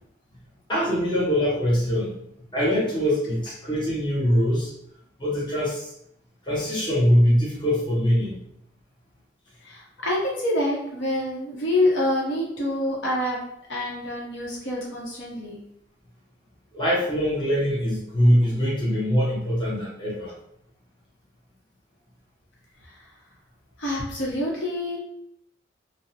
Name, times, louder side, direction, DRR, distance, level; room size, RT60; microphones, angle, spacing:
voice 1, 0.7-4.7 5.2-5.9 6.5-8.5 16.7-20.3, equal, 25° left, -6 dB, 0.6 m, -23 dB
voice 2, 9.6-13.4 13.7-15.6 23.8-25.0, left 1 dB, 75° left, -4 dB, 0.8 m, -26 dB
2.6 x 2.0 x 2.7 m, 0.73 s
head